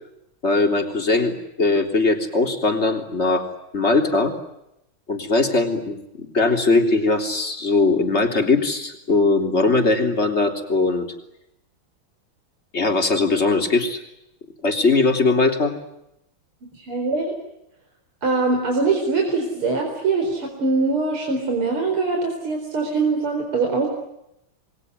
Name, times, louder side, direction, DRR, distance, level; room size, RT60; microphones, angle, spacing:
voice 1, 0.4-3.5 3.7-4.3 5.1-11.1 12.7-14.0 14.6-15.7, left 3 dB, 30° left, 4 dB, 3.7 m, -20 dB
voice 2, 16.8-17.3 18.2-23.9, right 3 dB, 75° right, 2 dB, 5.4 m, -22 dB
28.5 x 22.0 x 9.5 m, 0.83 s
omnidirectional pair, 2.4 m